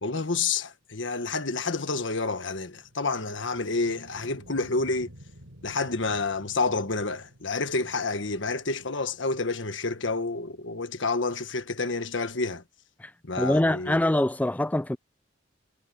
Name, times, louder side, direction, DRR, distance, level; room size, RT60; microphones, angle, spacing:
voice 1, 0.0-5.1 5.6-12.6 13.2-14.0, left 3 dB, 65° left, 1.5 m, -29 dB
sound 1, 1.6-11.8, equal, 85° right, 7.0 m, -53 dB
voice 2, 13.4-15.0, left 1 dB, 10° left, 0.4 m, -24 dB
head